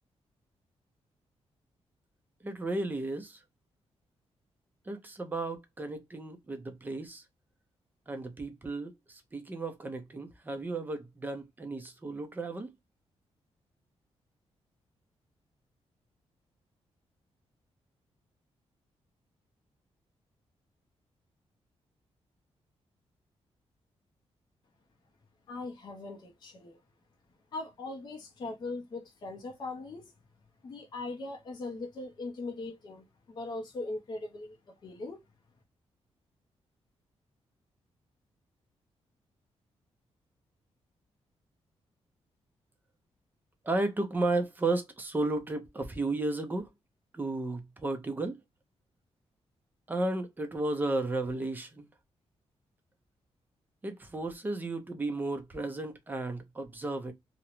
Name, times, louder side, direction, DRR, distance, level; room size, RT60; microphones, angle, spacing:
voice 1, 2.4-3.4 4.9-7.2 8.1-12.7 43.6-46.7 47.1-48.4 49.9-51.9 53.8-57.1, right 2 dB, 15° right, 0.5 m, -33 dB
voice 2, 25.5-26.8 27.5-30.1 30.6-35.2, left 2 dB, 40° left, 0.5 m, -40 dB
2.4 x 2.0 x 2.8 m
wide cardioid pair, 155°, 11 cm